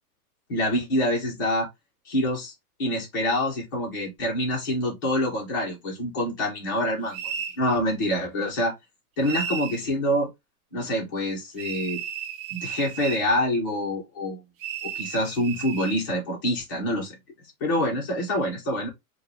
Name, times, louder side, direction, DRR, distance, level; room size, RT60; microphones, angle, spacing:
voice 1, 0.5-1.7 2.1-2.5 2.8-7.3 7.6-8.7 9.2-10.3 10.7-12.0 12.5-14.4 14.9-17.2 17.6-18.9, left 1 dB, 15° left, 0.5 m, -26 dB
sound 1, 7.1-7.6 9.2-9.8 11.6-13.3 14.6-16.0, right 8 dB, 55° right, 0.7 m, -34 dB
4.7 x 2.1 x 3.1 m
supercardioid pair, 170°, 47 cm